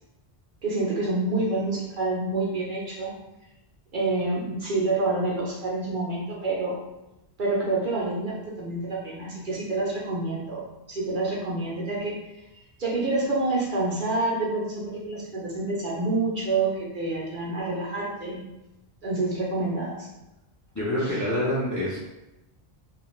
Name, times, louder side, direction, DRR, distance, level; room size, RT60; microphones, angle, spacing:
voice 1, 0.6-3.1 3.9-6.8 7.4-12.2 12.8-18.4 19.0-20.1 21.0-21.1, right 2 dB, 55° right, -5 dB, 0.7 m, -27 dB
voice 2, 20.7-22.0, left 1 dB, 20° left, -7 dB, 0.5 m, -26 dB
2.4 x 2.3 x 3.0 m, 0.95 s
omnidirectional pair, 1.1 m